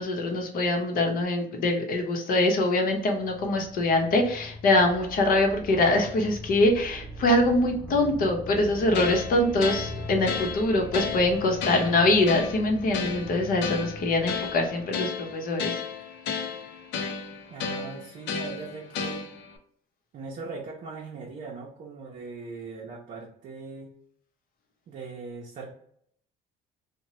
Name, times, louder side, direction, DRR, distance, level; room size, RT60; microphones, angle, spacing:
voice 1, 0.0-15.8, left 2 dB, 55° left, 2 dB, 0.8 m, -24 dB
sound 1, 2.9-15.6, equal, 10° left, 0.8 m, -41 dB
sound 2, 8.9-19.6, left 5 dB, 85° left, 0.5 m, -34 dB
voice 2, 17.5-19.2 20.1-23.9 24.9-25.7, right 4 dB, 50° right, -2 dB, 0.6 m, -40 dB
2.8 x 2.1 x 3.0 m, 0.67 s
cardioid pair, 125°, 17 cm